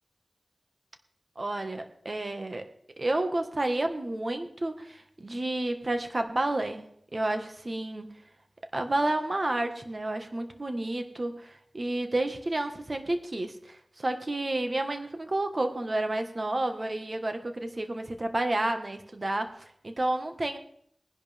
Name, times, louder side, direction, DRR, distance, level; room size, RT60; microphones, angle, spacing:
voice 1, 1.3-2.7 3.0-6.8 7.1-8.1 8.7-20.6, right 2 dB, 50° right, 7 dB, 1.6 m, -30 dB
19.0 x 10.5 x 3.6 m, 0.65 s
wide cardioid pair, 45°, 0 cm